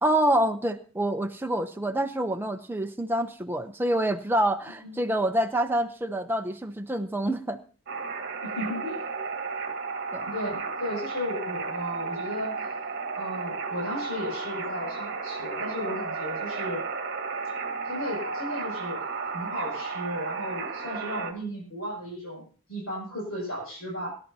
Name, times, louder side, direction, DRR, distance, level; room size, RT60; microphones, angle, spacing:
voice 1, 0.0-7.6 10.1-10.3, right 1 dB, 10° right, 6 dB, 0.7 m, -27 dB
sound 1, 7.9-21.3, right 4 dB, 45° right, 1.4 m, -33 dB
voice 2, 8.4-9.0 10.3-12.7 13.1-16.8 17.9-24.2, equal, 75° left, -3 dB, 6.7 m, -35 dB
23.5 x 11.0 x 2.8 m, 0.41 s
head